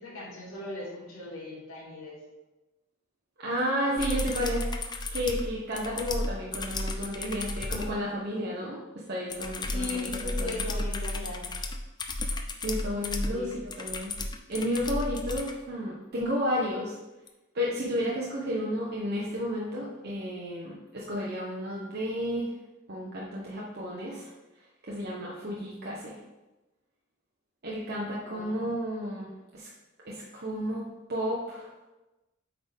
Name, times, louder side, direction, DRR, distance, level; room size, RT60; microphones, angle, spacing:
voice 1, 0.0-2.2 9.7-11.5 13.3-13.5 28.2-28.6, left 2 dB, 75° left, -5 dB, 2.2 m, -38 dB
voice 2, 3.4-4.7 5.1-10.6 12.6-13.5 13.8-14.1 14.5-17.0 17.5-22.5 22.9-24.3 24.8-26.2 27.6-29.3 29.5-29.7 30.0-31.7, equal, 50° right, -5 dB, 1.0 m, -32 dB
sound 1, 4.0-7.9 9.3-15.5 17.3-17.4, left 2 dB, 20° left, 0.5 m, -33 dB
8.5 x 3.8 x 3.5 m, 1.1 s
head